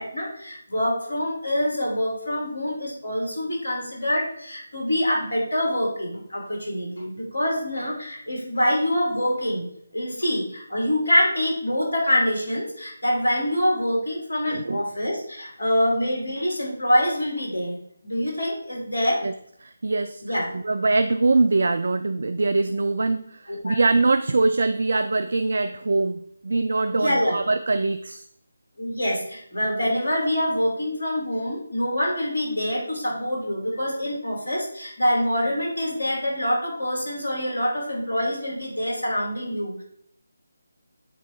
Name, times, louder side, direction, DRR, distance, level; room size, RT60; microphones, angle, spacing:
voice 1, 0.0-9.7 9.9-17.8 18.0-19.2 20.2-20.5 23.5-23.8 26.9-27.4 28.8-39.8, equal, 60° left, -1 dB, 2.7 m, -25 dB
voice 2, 14.5-14.8 19.2-19.3 19.6-28.2, right 3 dB, 55° right, 10 dB, 0.3 m, -23 dB
8.3 x 3.4 x 4.5 m, 0.67 s
figure-of-eight pair, 155°, 0 cm